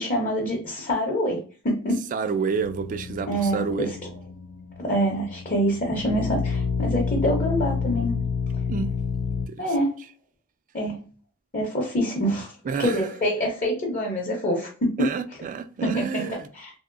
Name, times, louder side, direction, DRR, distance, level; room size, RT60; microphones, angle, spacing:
voice 1, 0.0-2.0 3.3-3.9 4.8-8.1 9.6-9.9 10.7-11.0 11.5-12.5 12.8-14.9 15.8-16.7, equal, 35° left, 0.7 m, -25 dB
voice 2, 2.1-3.9 8.7-8.9 9.5-9.6 12.7-13.1 15.0-16.5, right 5 dB, 35° right, 0.3 m, -29 dB
sound 1, 2.6-9.5, left 5 dB, 70° left, 0.4 m, -29 dB
3.0 x 2.7 x 2.5 m
head